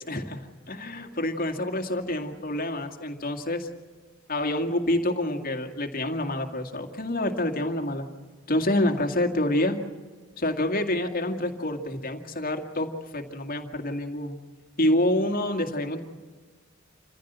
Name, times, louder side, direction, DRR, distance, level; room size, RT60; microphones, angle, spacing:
voice 1, 0.1-3.7 4.3-8.1 8.5-9.8 10.4-14.4 14.8-16.0, left 1 dB, 45° left, 5 dB, 2.1 m, -27 dB
27.5 x 15.5 x 8.2 m, 1.5 s
head